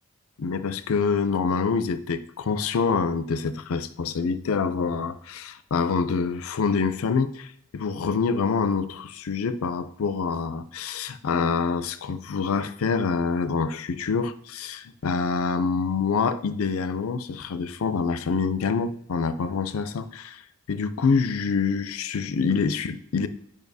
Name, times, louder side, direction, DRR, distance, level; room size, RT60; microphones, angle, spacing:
voice 1, 0.4-20.4 20.7-23.3, left 5 dB, 75° left, 13 dB, 0.5 m, -26 dB
9.3 x 5.2 x 2.7 m, 0.69 s
head